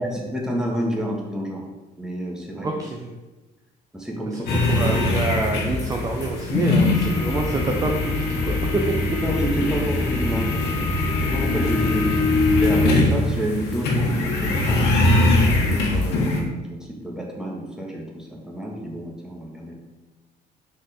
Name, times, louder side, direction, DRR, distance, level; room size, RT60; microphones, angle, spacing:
voice 1, 0.0-1.6 2.0-2.7 3.9-4.4 9.2-14.9 15.6-19.7, right 1 dB, 5° right, -2 dB, 1.5 m, -29 dB
voice 2, 2.6-3.1 4.3-9.0, right 3 dB, 20° right, 2 dB, 0.6 m, -27 dB
sound 1, 4.5-16.4, left 2 dB, 90° left, 1.3 m, -21 dB
5.1 x 4.3 x 5.0 m, 1.2 s
cardioid pair, 110°, 17 cm